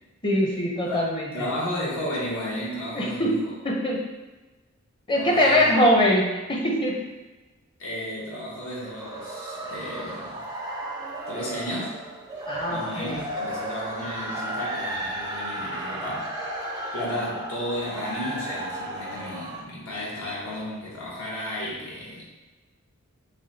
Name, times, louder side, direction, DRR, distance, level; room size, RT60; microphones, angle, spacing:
voice 1, 0.2-1.3 2.9-3.4 3.6-4.0 5.1-7.0 12.5-13.2, left 1 dB, 20° left, -2 dB, 0.7 m, -22 dB
voice 2, 1.3-3.5 5.1-5.8 7.8-10.4 11.3-12.0 12.7-16.3 16.9-22.3, left 1 dB, 75° left, -6 dB, 1.4 m, -33 dB
sound 1, 8.6-19.6, right 1 dB, 15° right, 0.4 m, -34 dB
6.4 x 2.3 x 2.7 m, 1.2 s
head